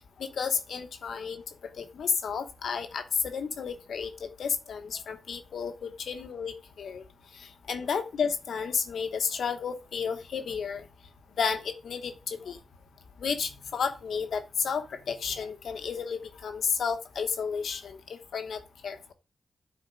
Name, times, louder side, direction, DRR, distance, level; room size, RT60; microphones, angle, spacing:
voice 1, 0.2-1.4 1.8-7.0 7.3-10.9 11.4-12.6 13.2-19.1, left 6 dB, 85° left, 7 dB, 1.0 m, -32 dB
10.0 x 4.2 x 3.7 m, 0.28 s
cardioid pair, 55°, 0 cm